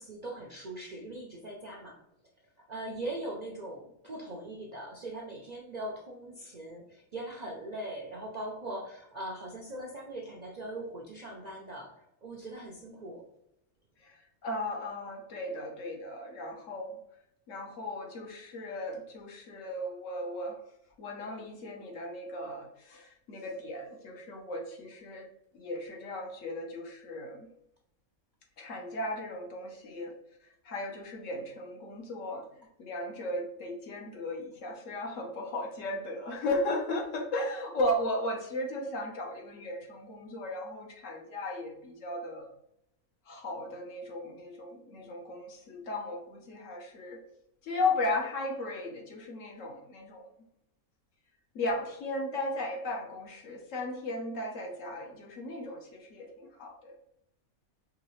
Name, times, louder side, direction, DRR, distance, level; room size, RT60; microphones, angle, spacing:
voice 1, 0.0-1.9 2.7-13.2, right 1 dB, 50° right, -1 dB, 0.5 m, -40 dB
voice 2, 14.0-17.0 17.5-20.6 21.0-25.3 25.5-27.5 28.6-30.1 30.6-42.5 43.3-47.2 47.6-50.2 51.5-56.9, left 1 dB, 65° left, 1 dB, 1.2 m, -36 dB
4.8 x 3.0 x 3.1 m, 0.79 s
omnidirectional pair, 1.5 m